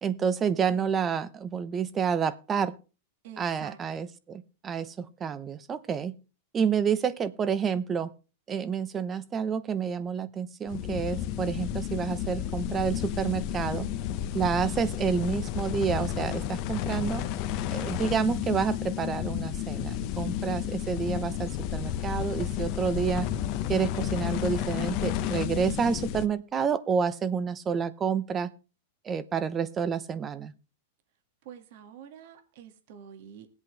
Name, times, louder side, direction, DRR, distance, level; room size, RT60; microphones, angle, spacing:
voice 1, 0.0-2.7 3.4-6.1 6.5-8.1 8.5-13.9 14.3-17.3 17.7-23.3 23.7-28.5 29.0-30.5, right 7 dB, 25° right, 0.8 m, -29 dB
voice 2, 3.2-3.8 31.4-33.5, right 8 dB, 60° right, 2.0 m, -47 dB
sound 1, 10.7-26.3, left 11 dB, 50° left, 1.0 m, -32 dB
20.0 x 8.3 x 3.4 m
hypercardioid pair, 125°, 0 cm